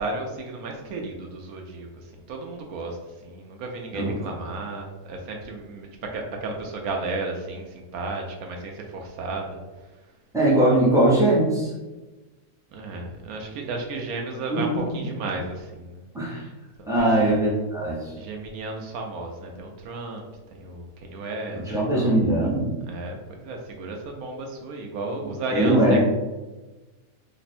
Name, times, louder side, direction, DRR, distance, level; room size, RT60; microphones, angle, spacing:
voice 1, 0.0-9.9 12.7-16.0 17.0-17.3 18.2-20.2 20.5-22.2 22.8-26.0, right 3 dB, 70° right, 2 dB, 1.0 m, -34 dB
voice 2, 10.3-11.7 14.5-14.6 16.1-16.5 16.9-18.1 21.7-22.7 25.5-26.0, right 1 dB, 5° right, -6 dB, 0.4 m, -20 dB
3.3 x 2.1 x 4.1 m, 1.2 s
omnidirectional pair, 1.7 m